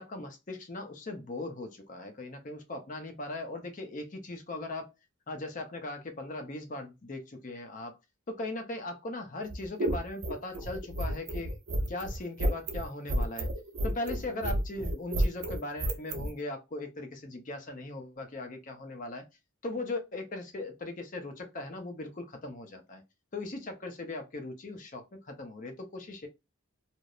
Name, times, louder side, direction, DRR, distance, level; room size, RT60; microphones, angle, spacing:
voice 1, 0.0-4.9 5.3-7.9 8.3-11.6 11.9-13.5 13.8-19.2 19.6-23.0 23.3-26.3, left 2 dB, 40° left, 0.5 m, -39 dB
sound 1, 9.4-16.3, right 1 dB, 75° right, 0.6 m, -31 dB
2.9 x 2.0 x 2.3 m
head